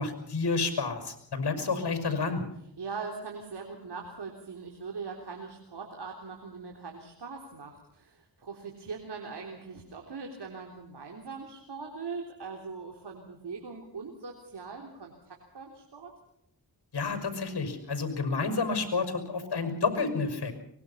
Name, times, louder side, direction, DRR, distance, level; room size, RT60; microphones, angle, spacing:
voice 1, 0.0-2.4 16.9-20.5, left 4 dB, 70° left, 7 dB, 5.8 m, -30 dB
voice 2, 2.8-16.1, right 4 dB, 75° right, 1 dB, 3.7 m, -41 dB
24.0 x 20.5 x 5.7 m, 0.75 s
cardioid pair, 50°, 41 cm